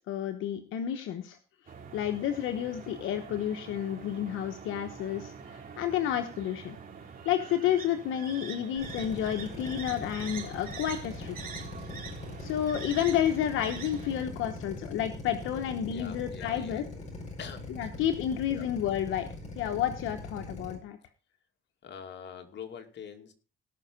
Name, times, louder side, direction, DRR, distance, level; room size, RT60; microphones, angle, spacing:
voice 1, 0.1-1.4 1.9-6.8 7.2-11.6 12.4-16.8 17.8-19.3 19.6-21.0, left 10 dB, 90° left, 7 dB, 1.1 m, -30 dB
sound 1, 1.7-14.2, right 6 dB, 45° right, 3.8 m, -45 dB
Drill, 8.8-20.7, left 2 dB, 35° left, 6.1 m, -41 dB
voice 2, 15.9-17.0 17.4-18.0 18.5-18.7 21.8-23.3, left 7 dB, 60° left, 5 dB, 2.5 m, -45 dB
18.0 x 6.0 x 5.2 m, 0.35 s
cardioid pair, 90°, 20 cm